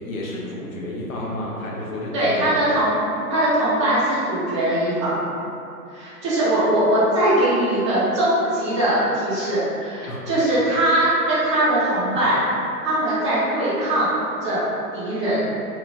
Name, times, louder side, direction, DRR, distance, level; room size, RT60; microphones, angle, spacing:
voice 1, 0.0-2.6 10.0-10.3, left 1 dB, 60° left, -3 dB, 0.7 m, -31 dB
voice 2, 2.1-2.9 3.3-5.2 5.9-12.4 12.8-14.1 14.4-14.7 14.9-15.5, right 1 dB, 20° right, -11 dB, 0.5 m, -21 dB
2.8 x 2.1 x 2.6 m, 2.7 s
figure-of-eight pair, 125°, 47 cm